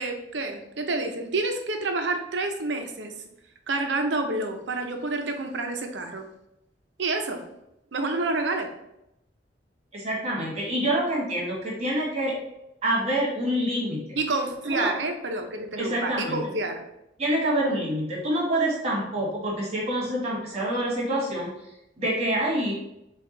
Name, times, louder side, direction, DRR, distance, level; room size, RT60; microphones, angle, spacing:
voice 1, 0.0-3.1 3.7-6.3 7.0-7.4 7.9-8.7 14.2-16.8, right 2 dB, 70° right, 5 dB, 0.6 m, -28 dB
voice 2, 9.9-12.3 12.8-14.2 14.6-14.9 15.8-16.4 17.2-21.5 22.0-22.7, right 1 dB, 35° right, -4 dB, 1.5 m, -26 dB
4.5 x 2.4 x 3.8 m, 0.86 s
head